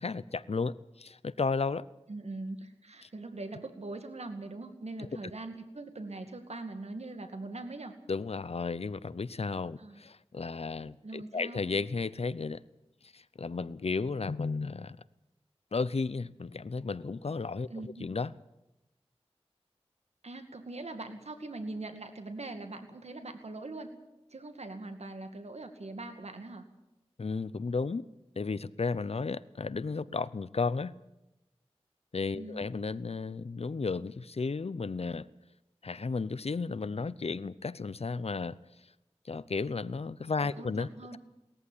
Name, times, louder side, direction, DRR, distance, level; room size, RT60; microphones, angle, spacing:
voice 1, 0.0-1.9 5.0-5.1 8.1-12.6 13.0-15.0 15.7-18.3 27.2-28.1 28.4-31.0 32.1-35.3 35.8-38.6 39.2-41.2, left 4 dB, 70° left, 18 dB, 0.7 m, -34 dB
voice 2, 2.1-8.0 9.8-10.0 11.0-11.6 17.7-18.1 20.2-23.9 24.3-26.6 32.3-32.7 40.6-41.2, right 2 dB, 85° right, 7 dB, 2.2 m, -42 dB
18.5 x 14.0 x 9.9 m, 0.94 s
wide cardioid pair, 45°, 11 cm